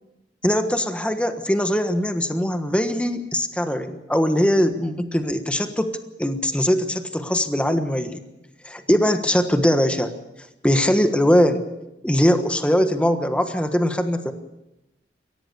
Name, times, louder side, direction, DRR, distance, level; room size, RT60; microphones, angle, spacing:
voice 1, 0.4-8.2 8.6-10.1 10.6-11.6 12.0-14.3, equal, 5° left, 7 dB, 1.3 m, -21 dB
22.5 x 17.5 x 6.9 m, 0.92 s
head